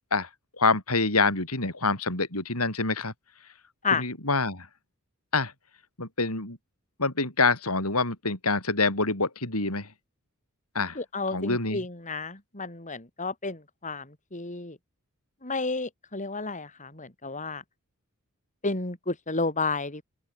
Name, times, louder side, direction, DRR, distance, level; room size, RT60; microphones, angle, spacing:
voice 1, 0.6-3.1 3.9-4.7 5.3-5.5 6.0-6.6 7.0-9.9 10.7-11.0 11.3-11.8, left 3 dB, 90° left, 7.6 m, -26 dB
voice 2, 11.0-14.8 15.4-17.6 18.6-20.0, left 3 dB, 35° left, 5.3 m, -31 dB
open air
head